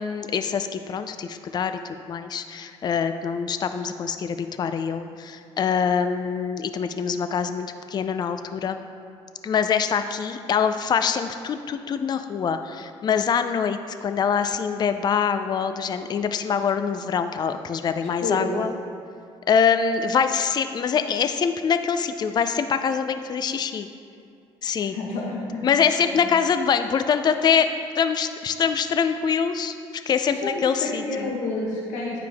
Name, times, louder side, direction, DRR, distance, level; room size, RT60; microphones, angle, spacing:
voice 1, 0.0-8.8 9.4-18.7 19.5-23.9 24.6-25.0 25.6-27.7 28.0-29.7 30.1-31.3, left 6 dB, 35° left, 9 dB, 0.4 m, -24 dB
voice 2, 18.0-18.6 24.8-26.2 30.3-32.2, left 2 dB, 85° left, -3 dB, 1.1 m, -30 dB
9.5 x 4.9 x 3.4 m, 2.4 s
cardioid pair, 85°, 12 cm